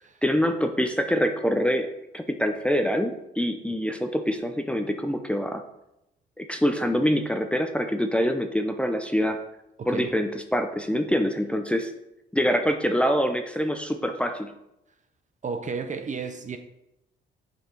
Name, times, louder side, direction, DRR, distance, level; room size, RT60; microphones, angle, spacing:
voice 1, 0.2-1.9 2.1-5.6 6.4-9.4 9.9-11.9 12.3-14.5, equal, 5° left, 5 dB, 0.6 m, -25 dB
voice 2, 9.8-10.1 15.4-16.6, right 5 dB, 40° right, 7 dB, 0.7 m, -33 dB
6.6 x 5.4 x 4.5 m, 0.87 s
cardioid pair, 90°, 20 cm